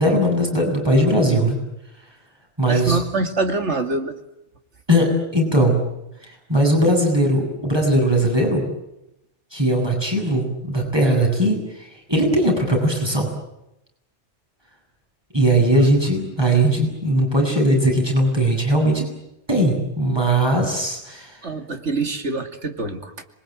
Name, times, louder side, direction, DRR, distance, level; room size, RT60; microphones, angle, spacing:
voice 1, 0.0-1.6 2.6-3.0 4.9-5.8 6.5-8.7 9.5-11.6 12.1-13.3 15.3-19.0 19.5-21.3, right 1 dB, 20° right, 1 dB, 8.2 m, -19 dB
voice 2, 2.7-4.2 21.4-23.2, right 3 dB, 80° right, 6 dB, 2.9 m, -25 dB
26.5 x 23.0 x 9.3 m, 0.87 s
omnidirectional pair, 1.2 m